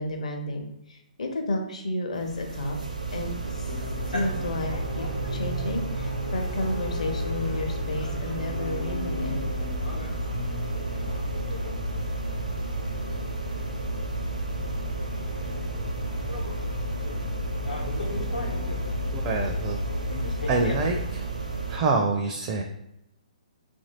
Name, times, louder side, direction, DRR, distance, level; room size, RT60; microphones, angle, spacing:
voice 1, 0.0-2.8 3.1-3.7 4.1-9.4, left 1 dB, 60° left, 3 dB, 0.8 m, -32 dB
sound 1, 2.2-21.8, right 4 dB, 75° right, 0.7 m, -33 dB
sound 2, 3.7-21.1, left 4 dB, 85° left, 1.0 m, -33 dB
voice 2, 19.1-19.8 20.5-21.3 21.7-22.6, right 4 dB, 30° right, 2 dB, 0.4 m, -26 dB
2.9 x 2.7 x 4.1 m, 0.85 s
figure-of-eight pair, 125°, 4 cm